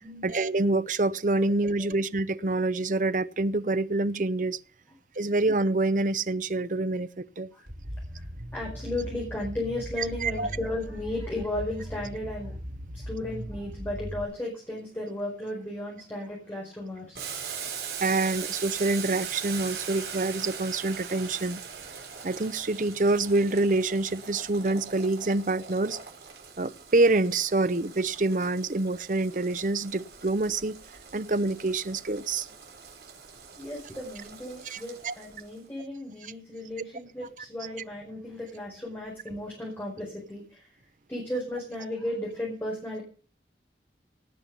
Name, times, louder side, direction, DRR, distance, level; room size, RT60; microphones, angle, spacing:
voice 1, 0.2-4.6 5.2-7.5 10.2-10.5 18.0-21.6 22.2-26.0 26.6-30.8 31.1-32.5 34.6-35.1 36.2-36.3, right 2 dB, 45° right, 0.7 m, -26 dB
sound 1, 7.7-14.2, equal, 90° right, 6.4 m, -39 dB
voice 2, 8.5-12.5 12.9-17.2 33.6-40.6 41.1-43.0, left 1 dB, 10° left, 5.0 m, -35 dB
Boiling, 17.1-35.6, right 7 dB, 70° right, 5.2 m, -41 dB
18.0 x 7.6 x 6.8 m
head